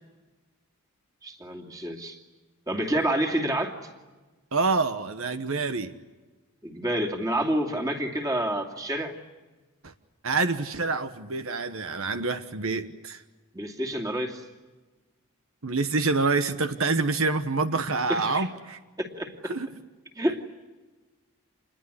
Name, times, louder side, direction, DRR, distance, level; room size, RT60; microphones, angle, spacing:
voice 1, 1.2-2.2 2.7-3.8 6.6-9.1 13.5-14.4 18.1-18.5 19.0-19.5 20.2-20.4, right 1 dB, 15° right, 2 dB, 2.7 m, -28 dB
voice 2, 4.5-5.9 9.8-9.9 10.2-13.2 15.6-18.8 19.4-19.7, right 3 dB, 70° right, 10 dB, 1.2 m, -27 dB
28.0 x 21.5 x 9.9 m, 1.2 s
head